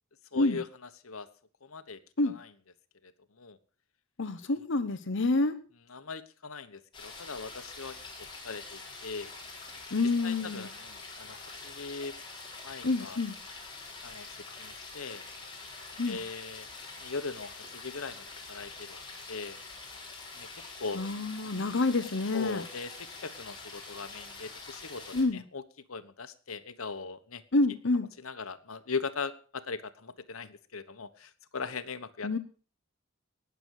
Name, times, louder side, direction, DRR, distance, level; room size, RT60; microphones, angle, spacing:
voice 1, 0.3-1.3 1.6-2.5 3.0-3.1 3.4-3.6 5.9-8.0 8.4-9.3 10.2-12.1 12.6-13.2 14.0-15.2 16.1-16.7 17.0-19.0 19.3-19.6 20.4-21.0 22.3-22.9 23.2-25.6 25.9-27.4 28.2-32.4, left 4 dB, 90° left, 10 dB, 1.2 m, -40 dB
voice 2, 4.2-5.6 9.9-10.7 12.8-13.4 16.0-16.2 20.9-22.6 25.1-25.4 27.5-28.1 32.2-32.4, left 2 dB, 60° left, 11 dB, 1.0 m, -28 dB
sound 1, 6.9-25.2, left 3 dB, 25° left, 4.1 m, -45 dB
19.0 x 7.0 x 6.5 m, 0.40 s
head